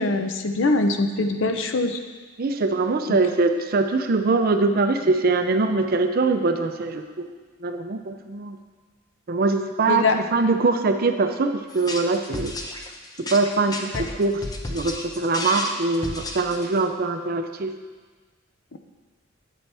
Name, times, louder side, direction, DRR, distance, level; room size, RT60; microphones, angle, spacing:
voice 1, 0.0-2.0 3.1-3.2 9.9-10.2 18.7-18.8, left 3 dB, 65° left, 7 dB, 0.6 m, -23 dB
voice 2, 2.4-7.3 7.6-8.6 9.3-12.5 13.3-14.4 14.7-17.7, right 3 dB, 45° right, 7 dB, 0.5 m, -23 dB
sound 1, 11.7-16.8, left 2 dB, 20° left, 0.6 m, -32 dB
9.2 x 6.9 x 3.4 m, 1.4 s
head